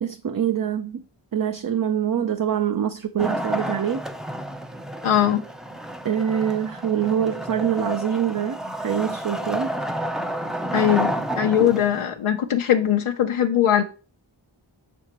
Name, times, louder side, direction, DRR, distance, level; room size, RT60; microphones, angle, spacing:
voice 1, 0.0-1.0 1.3-4.0 6.0-9.7 11.6-11.7, right 9 dB, 45° right, 0.5 m, -25 dB
Wood, 3.2-12.1, right 1 dB, ahead, 0.5 m, -30 dB
voice 2, 5.0-5.4 10.7-13.8, left 10 dB, 90° left, 0.6 m, -20 dB
6.6 x 6.1 x 2.9 m
wide cardioid pair, 50°, 48 cm